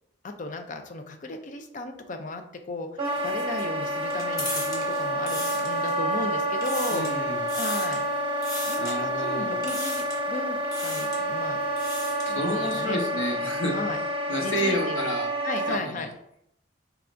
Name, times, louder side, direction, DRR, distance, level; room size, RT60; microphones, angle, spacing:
voice 1, 0.2-2.9 3.2-7.1 7.5-8.0 8.7-11.6 12.3-13.0 13.7-14.0 14.4-15.1 15.4-16.1, left 2 dB, 40° left, 6 dB, 0.4 m, -35 dB
sound 1, 3.0-6.1 6.5-7.2 7.5-8.0 8.4-8.9 9.6-10.3 10.6-11.2 11.6-12.4, left 1 dB, 20° left, 0.9 m, -37 dB
Wind instrument woodwind instrument, 3.0-15.8, right 1 dB, 30° right, 0.7 m, -28 dB
voice 2, 6.9-7.4 8.8-9.5 12.3-13.8 14.3-15.3 15.7-16.1, equal, 85° left, 1 dB, 1.0 m, -30 dB
4.6 x 3.4 x 2.5 m, 0.74 s
head